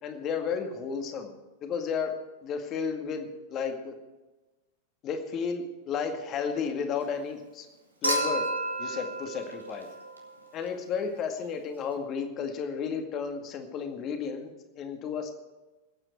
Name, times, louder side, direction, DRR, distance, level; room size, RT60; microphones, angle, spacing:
voice 1, 0.0-1.3 1.6-3.9 5.0-7.7 8.0-8.5 8.8-9.9 10.5-14.5 14.8-15.3, left 6 dB, 35° left, 5 dB, 2.1 m, -33 dB
Human group actions / Chink clink / Liquid, 8.0-10.4 11.9-12.0, right 1 dB, 85° right, 2.3 m, -31 dB
21.0 x 8.9 x 4.6 m, 1.1 s
figure-of-eight pair, 90°, 0 cm